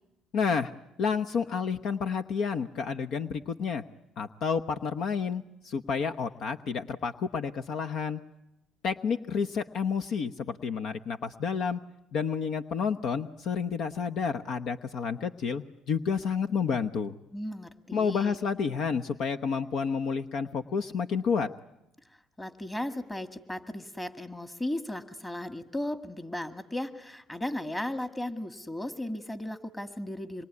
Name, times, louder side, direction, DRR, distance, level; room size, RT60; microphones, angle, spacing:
voice 1, 0.3-0.7 1.0-3.8 4.2-8.2 8.8-11.8 12.1-17.1 17.9-21.5, left 6 dB, 65° left, 8 dB, 1.0 m, -30 dB
voice 2, 17.3-18.4 22.4-30.4, left 1 dB, 15° left, 10 dB, 2.0 m, -36 dB
26.0 x 22.5 x 9.7 m, 0.89 s
supercardioid pair, 90°, 0 cm